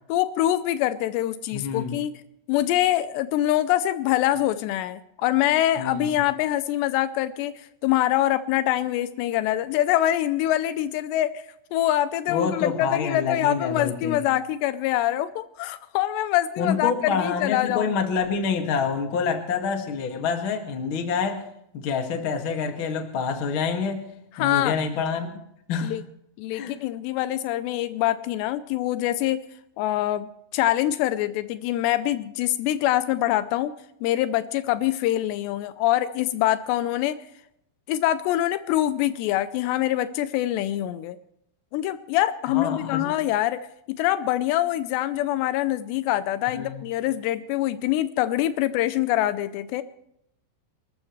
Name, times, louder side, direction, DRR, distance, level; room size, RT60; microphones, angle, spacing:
voice 1, 0.1-2.1 2.5-11.4 11.7-18.0 24.4-24.8 25.8-26.0 26.4-29.4 29.8-33.7 34.0-37.2 37.9-41.2 41.7-43.6 43.9-49.8, left 13 dB, 90° left, 12 dB, 2.4 m, -24 dB
voice 2, 1.5-1.9 5.8-6.1 12.3-14.3 16.6-21.4 21.7-24.0 24.4-25.3 25.7-25.9 26.5-26.7 42.5-43.1 46.5-46.8, left 5 dB, 55° left, 4 dB, 1.3 m, -27 dB
28.5 x 13.5 x 3.2 m, 0.77 s
omnidirectional pair, 5.7 m